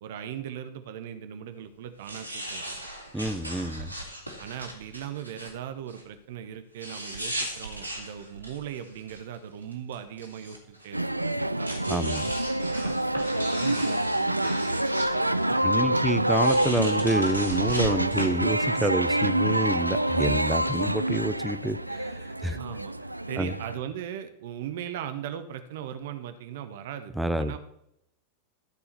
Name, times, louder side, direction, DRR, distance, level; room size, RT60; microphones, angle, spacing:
voice 1, 0.0-2.9 4.4-11.7 12.7-12.9 13.3-16.0 22.6-22.9 23.3-27.1 27.4-27.6, right 9 dB, 55° right, 9 dB, 0.9 m, -39 dB
sound 1, 2.0-5.5 5.9-6.0 6.8-9.4 9.6-10.9 11.6-15.1 15.4-15.5 16.3-18.2, right 1 dB, 90° left, 2.1 m, -37 dB
voice 2, 3.1-3.9 11.9-12.3 15.6-22.6 23.4-23.5 27.2-27.5, right 1 dB, 5° right, 10 dB, 0.7 m, -28 dB
sound 2, 10.9-23.8, right 1 dB, 85° right, 0.3 m, -27 dB
13.0 x 4.8 x 6.7 m, 0.77 s
figure-of-eight pair, 90°, 0 cm